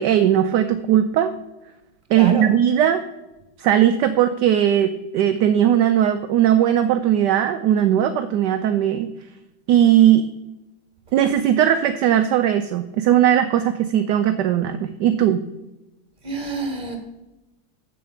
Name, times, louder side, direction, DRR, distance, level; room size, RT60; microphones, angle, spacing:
voice 1, 0.0-1.3 2.1-3.0 3.6-9.1 9.7-10.3 11.1-15.4, right 10 dB, 70° right, 9 dB, 1.1 m, -18 dB
voice 2, 2.1-2.5 16.2-17.0, right 3 dB, 25° right, 4 dB, 1.9 m, -28 dB
7.8 x 7.2 x 6.8 m, 1.0 s
omnidirectional pair, 2.1 m